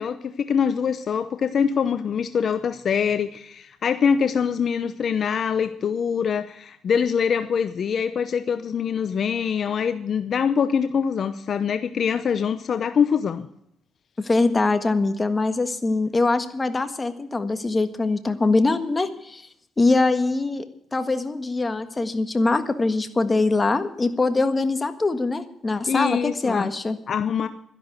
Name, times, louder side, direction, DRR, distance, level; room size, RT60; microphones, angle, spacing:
voice 1, 0.0-13.5 25.9-26.7 27.1-27.5, left 7 dB, 55° left, 11 dB, 0.8 m, -24 dB
voice 2, 14.2-19.4 19.8-20.6 20.9-27.0, left 3 dB, 25° left, 9 dB, 1.5 m, -23 dB
12.5 x 11.0 x 8.0 m, 0.74 s
cardioid pair, 90°, 0 cm